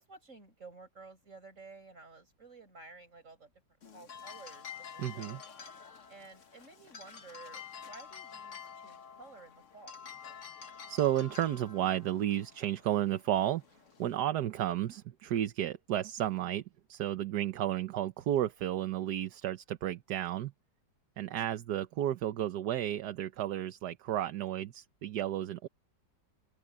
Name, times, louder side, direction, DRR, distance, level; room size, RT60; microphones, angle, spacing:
voice 1, 0.0-3.5 3.9-5.4 6.1-10.0 21.3-21.6, right 3 dB, 45° right, 6.5 m, -53 dB
sound 1, 3.8-14.2, left 7 dB, 45° left, 1.7 m, -49 dB
voice 2, 5.0-5.4 10.9-13.6 14.0-16.6 16.9-20.5 21.2-25.7, right 12 dB, 70° right, 1.4 m, -32 dB
open air
omnidirectional pair, 1.8 m